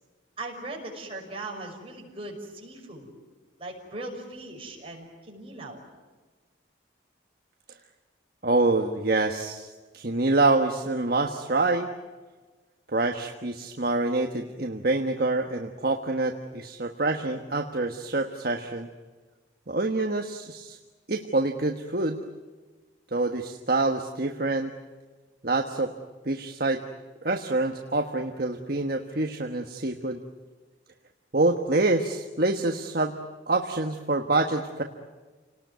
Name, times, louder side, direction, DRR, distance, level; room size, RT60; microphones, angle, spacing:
voice 1, 0.4-3.1 3.6-5.8, right 2 dB, 30° right, 0 dB, 6.0 m, -39 dB
voice 2, 8.4-11.9 12.9-18.9 19.7-20.8 21.1-22.2 23.1-24.7 25.4-25.9 26.2-26.8 27.2-30.2 31.3-33.1 33.5-34.8, right 2 dB, 50° right, 4 dB, 1.4 m, -26 dB
30.0 x 19.0 x 9.4 m, 1.3 s
head